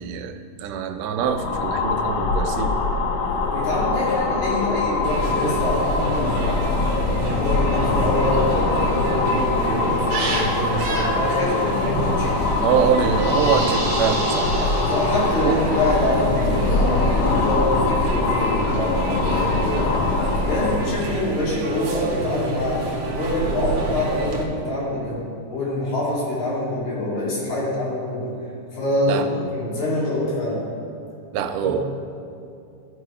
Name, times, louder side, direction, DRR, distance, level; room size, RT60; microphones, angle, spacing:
voice 1, 0.0-2.7 12.6-14.5 15.4-15.6 29.1-29.3 31.3-31.8, right 7 dB, 90° right, 7 dB, 2.1 m, -23 dB
sound 1, 1.2-21.0, left 3 dB, 90° left, 2.2 m, -23 dB
voice 2, 3.2-6.3 7.1-12.3 14.5-19.9 20.4-25.2 25.5-28.3 28.7-30.6 31.6-31.8, left 1 dB, 70° left, -6 dB, 3.6 m, -25 dB
sound 2, 5.0-24.4, right 2 dB, 60° right, 1.8 m, -28 dB
sound 3, 13.1-15.7, right 1 dB, 20° right, 1.0 m, -31 dB
13.5 x 5.0 x 4.8 m, 2.6 s
omnidirectional pair, 3.6 m